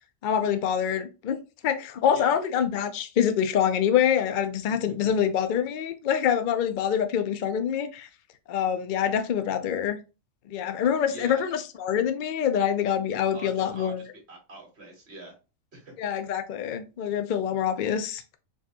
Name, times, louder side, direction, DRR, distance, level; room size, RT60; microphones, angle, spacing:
voice 1, 0.2-1.4 1.6-8.1 8.5-10.0 10.5-14.0 16.0-18.2, left 8 dB, 65° left, 0.5 m, -25 dB
voice 2, 4.7-5.1 11.1-11.4 13.0-15.4 15.7-15.9, right 1 dB, 55° right, 1.6 m, -44 dB
4.5 x 2.4 x 2.8 m
omnidirectional pair, 1.4 m